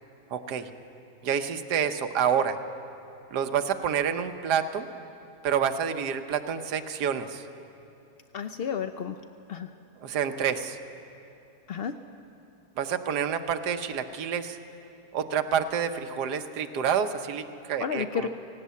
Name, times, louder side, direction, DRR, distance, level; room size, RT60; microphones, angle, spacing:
voice 1, 0.3-0.7 1.2-2.6 3.3-4.9 5.4-7.4 10.0-10.8 12.8-14.6 15.1-18.3, right 7 dB, 85° right, 8 dB, 1.5 m, -28 dB
voice 2, 8.3-9.2 9.5-9.7 11.7-12.0 17.8-18.3, left 7 dB, 80° left, 9 dB, 0.5 m, -31 dB
18.0 x 18.0 x 8.2 m, 2.9 s
omnidirectional pair, 1.7 m